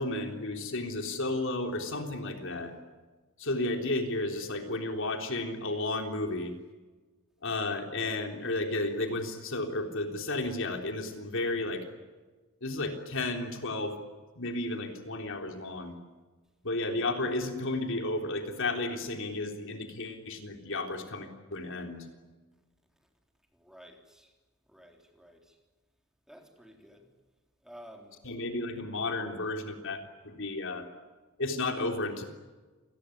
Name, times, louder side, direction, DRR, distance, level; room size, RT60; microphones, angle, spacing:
voice 1, 0.0-2.7 3.4-6.5 7.4-11.8 12.6-14.0 14.4-16.0 16.6-22.1 28.2-30.9 31.4-32.2, left 2 dB, 65° left, 3.6 m, -33 dB
voice 2, 23.5-24.3 24.7-25.6 26.3-27.1 27.6-28.2, equal, 5° right, 3.6 m, -52 dB
28.0 x 20.0 x 9.9 m
head